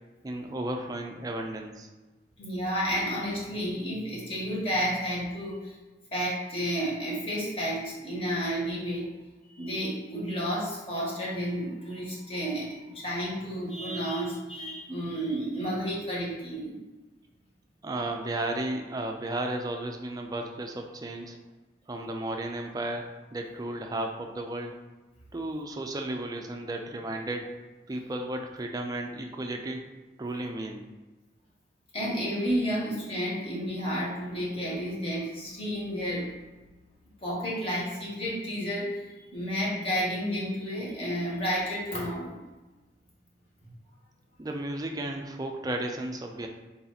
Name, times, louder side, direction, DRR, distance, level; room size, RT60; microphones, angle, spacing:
voice 1, 0.2-1.9 17.8-21.4 21.9-24.7 25.3-27.5 27.9-29.9 30.2-30.8 44.4-46.5, right 1 dB, 20° right, 3 dB, 0.4 m, -34 dB
voice 2, 2.4-5.8 6.1-9.1 9.5-16.8 31.9-36.3 37.2-39.0 39.3-42.3, equal, 35° left, -5 dB, 1.2 m, -31 dB
4.1 x 2.9 x 3.9 m, 1.2 s
head